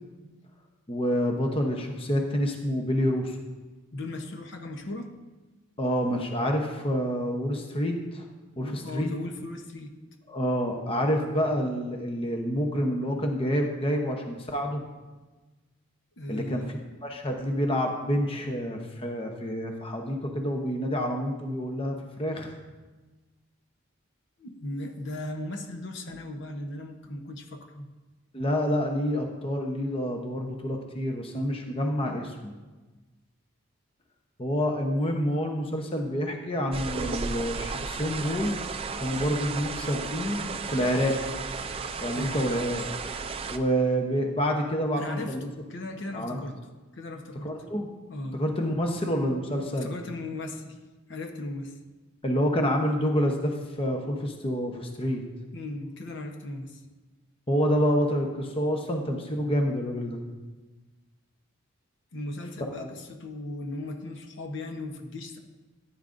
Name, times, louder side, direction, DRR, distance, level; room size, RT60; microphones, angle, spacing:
voice 1, 0.9-3.4 5.8-8.3 8.6-9.1 10.3-14.8 16.3-16.6 17.0-22.6 28.3-32.5 34.4-38.5 39.0-41.2 42.0-45.5 46.1-46.4 47.4-47.9 48.3-49.9 52.2-55.2 57.5-60.2 62.8-62.9, equal, 25° left, 3 dB, 0.8 m, -28 dB
voice 2, 3.9-5.1 8.6-9.9 16.2-16.8 24.4-27.9 42.1-42.4 45.0-46.6 46.9-47.5 48.1-48.4 49.8-50.8 51.1-51.8 55.5-56.8 62.1-65.4, left 1 dB, 55° left, 5 dB, 0.9 m, -37 dB
sound 1, 36.7-43.6, right 4 dB, 25° right, 0.4 m, -34 dB
14.0 x 9.6 x 2.6 m, 1.2 s
head